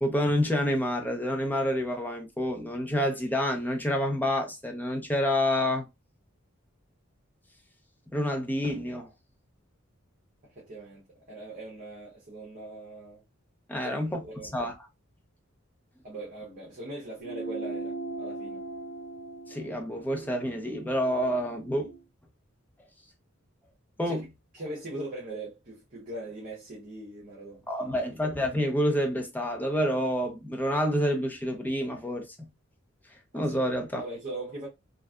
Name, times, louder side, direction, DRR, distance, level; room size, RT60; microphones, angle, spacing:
voice 1, 0.0-5.9 8.1-9.1 13.7-14.7 19.5-21.9 24.0-24.3 27.7-32.5 33.3-34.0, equal, 10° left, 0.6 m, -28 dB
voice 2, 10.5-13.2 13.7-14.5 16.0-18.6 24.0-24.2 24.5-28.0 33.3-33.5 34.0-34.7, right 1 dB, 40° right, 1.1 m, -41 dB
sound 1, 17.2-22.0, right 3 dB, 60° left, 0.9 m, -39 dB
3.1 x 2.5 x 2.3 m
head